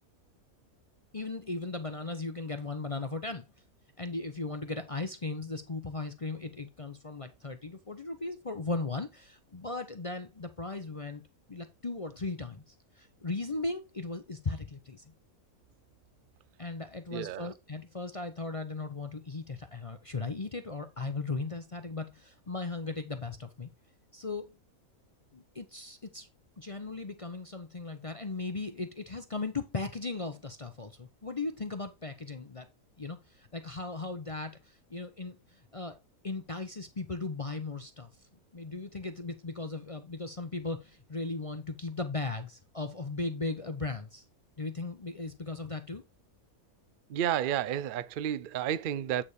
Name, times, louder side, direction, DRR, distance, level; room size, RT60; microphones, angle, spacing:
voice 1, 1.1-3.5 4.0-11.2 11.5-15.0 16.6-23.7 24.1-24.6 25.3-26.3 26.6-32.7 33.0-36.0 36.2-38.1 38.5-44.2 44.6-46.0, left 3 dB, 35° left, 0.6 m, -37 dB
voice 2, 17.1-17.5 47.1-49.2, right 10 dB, 75° right, 0.4 m, -31 dB
8.7 x 4.2 x 4.8 m
omnidirectional pair, 1.5 m